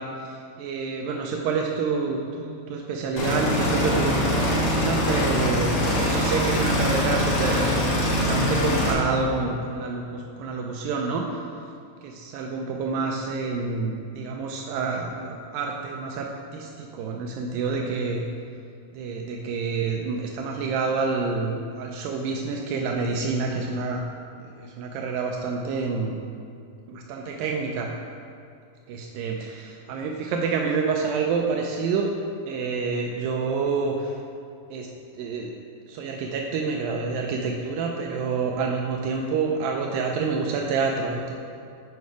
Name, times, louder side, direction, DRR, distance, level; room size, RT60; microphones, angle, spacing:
voice 1, 0.0-11.4 12.0-18.2 18.9-24.1 24.4-26.2 26.9-27.9 28.9-32.1 32.5-34.2 34.7-34.9 35.1-35.5 35.9-41.4, right 4 dB, 90° right, 1 dB, 2.0 m, -28 dB
sound 1, 3.2-8.9, left 1 dB, 85° left, 1.2 m, -23 dB
8.3 x 5.3 x 4.7 m, 2.5 s
omnidirectional pair, 4.6 m